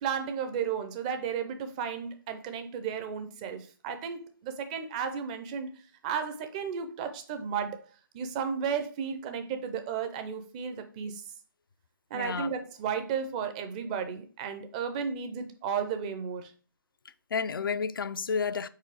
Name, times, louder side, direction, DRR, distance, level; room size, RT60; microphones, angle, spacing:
voice 1, 0.0-7.9 8.1-11.2 12.1-16.5, right 7 dB, 20° right, 0.5 m, -34 dB
voice 2, 12.1-12.6 17.0-18.7, left 5 dB, 75° left, 0.5 m, -31 dB
4.7 x 4.2 x 4.8 m
hypercardioid pair, 155°, 12 cm